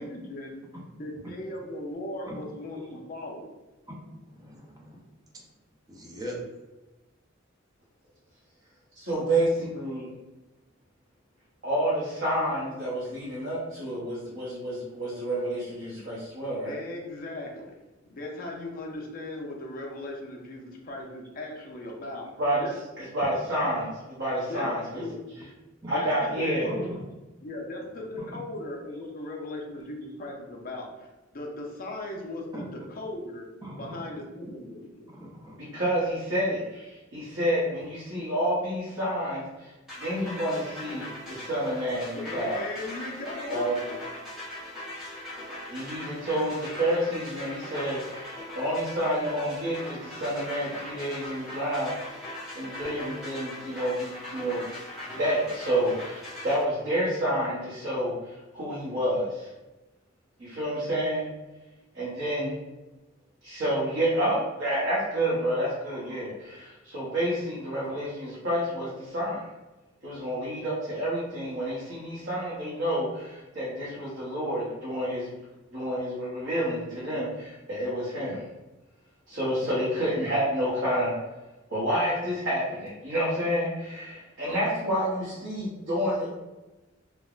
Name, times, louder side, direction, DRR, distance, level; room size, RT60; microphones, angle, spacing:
voice 1, 0.0-0.6 1.0-3.5 16.6-17.7 18.0-22.3 22.6-22.7 24.5-24.7 24.9-25.4 25.9-26.9 27.4-31.1 31.3-33.5 33.8-35.0 42.1-43.6, left 1 dB, 45° left, 0 dB, 0.5 m, -38 dB
voice 2, 4.2-5.0 5.3-5.4 5.9-6.4 25.8-25.9 26.7-27.0 28.2-28.4 32.5-32.7 33.6-34.2 35.1-35.8, equal, 20° right, -2 dB, 0.5 m, -41 dB
voice 3, 8.9-10.1 11.6-16.8 22.4-25.5 25.9-26.7 35.6-39.7 40.0-42.7 43.5-43.8 45.7-51.9 52.5-54.7 55.1-59.5 60.4-61.3 61.9-62.6 63.4-69.5 70.0-75.3 75.7-78.4 79.3-81.1 81.7-86.3, right 1 dB, 70° right, -9 dB, 0.9 m, -29 dB
sound 1, 39.9-56.6, left 1 dB, 5° right, 0.9 m, -40 dB
3.2 x 2.1 x 2.4 m, 1.1 s
head